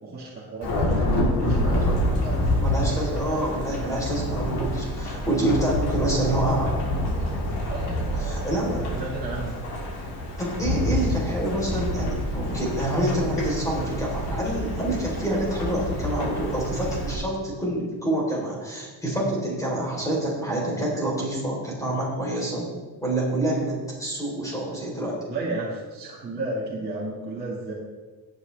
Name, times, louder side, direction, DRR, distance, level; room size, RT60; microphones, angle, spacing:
voice 1, 0.0-4.1 7.7-9.6 25.3-27.7, right 2 dB, 25° right, -7 dB, 2.1 m, -34 dB
Thunderstorm / Rain, 0.6-17.1, left 1 dB, 90° left, 3.7 m, -27 dB
voice 2, 2.2-6.7 8.1-8.9 10.4-22.7 23.0-25.2, right 1 dB, 10° left, -4 dB, 3.9 m, -27 dB
17.0 x 8.4 x 3.5 m, 1.3 s
cardioid pair, 155°, 39 cm